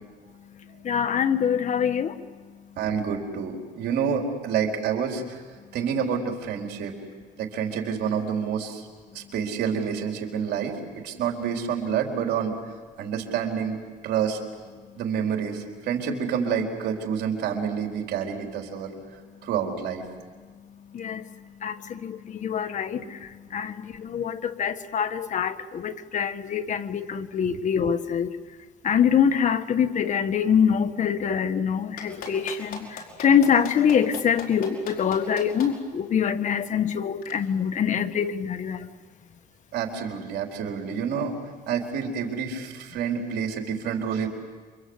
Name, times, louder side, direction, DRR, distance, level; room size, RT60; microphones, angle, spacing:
voice 1, 0.8-2.2 20.9-21.3 21.6-28.4 28.8-38.9, left 7 dB, 45° left, 9 dB, 1.5 m, -24 dB
voice 2, 2.8-5.4 5.7-7.0 7.4-8.9 9.1-10.8 11.0-12.6 13.0-13.8 14.0-14.4 15.0-18.9 19.4-20.0 22.9-23.1 27.5-27.6 39.7-41.4 41.7-44.3, right 7 dB, 75° right, 2 dB, 4.5 m, -28 dB
Clapping, 32.0-35.7 37.2-37.3, left 5 dB, 65° left, 5.8 m, -38 dB
28.5 x 25.0 x 8.2 m, 1.5 s
cardioid pair, 110°, 17 cm